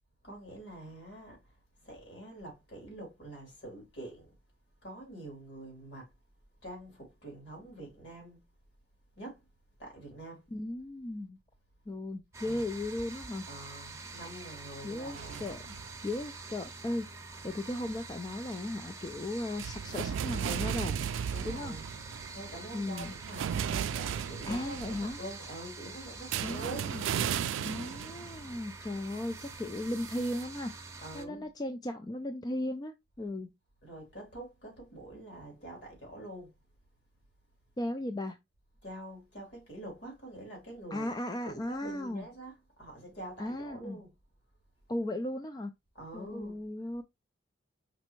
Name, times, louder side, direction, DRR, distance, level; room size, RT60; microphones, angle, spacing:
voice 1, 0.2-1.4 1.8-4.3 4.8-6.1 6.6-8.4 9.2-9.4 9.8-10.4 13.5-15.5 21.3-27.0 31.0-31.5 33.8-36.5 38.8-41.1 41.4-44.1 45.9-46.6, right 1 dB, 60° left, 2.9 m, -46 dB
voice 2, 10.5-11.4 11.9-13.5 14.8-15.8 16.0-21.0 21.4-21.7 22.7-23.2 24.5-25.2 26.4-27.0 27.6-30.7 31.1-33.5 37.8-38.4 40.9-42.3 43.4-44.0 44.9-45.7 46.1-47.0, left 1 dB, 20° left, 0.3 m, -36 dB
sound 1, 12.3-31.3, right 3 dB, 15° right, 0.7 m, -46 dB
sound 2, 15.1-16.5 17.8-18.2 18.5-18.6 19.6-25.3 26.3-28.7 29.1-30.4, right 8 dB, 85° right, 0.3 m, -36 dB
5.1 x 3.2 x 3.0 m
head